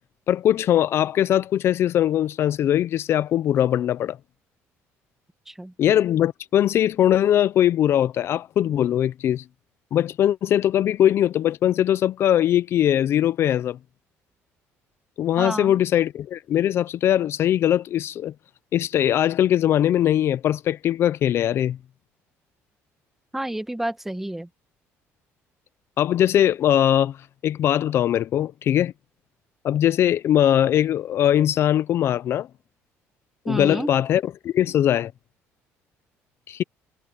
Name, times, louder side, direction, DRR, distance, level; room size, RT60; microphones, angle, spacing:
voice 1, 0.3-4.2 5.8-9.4 9.9-13.8 15.2-18.3 18.7-21.8 26.0-27.2 27.4-28.9 29.6-32.5 33.5-35.1 36.5-36.6, left 11 dB, 50° left, 0.5 m, -21 dB
voice 2, 15.4-15.8 23.3-24.5 33.5-33.9, right 1 dB, 5° right, 1.5 m, -29 dB
cardioid pair, 130°, 5 cm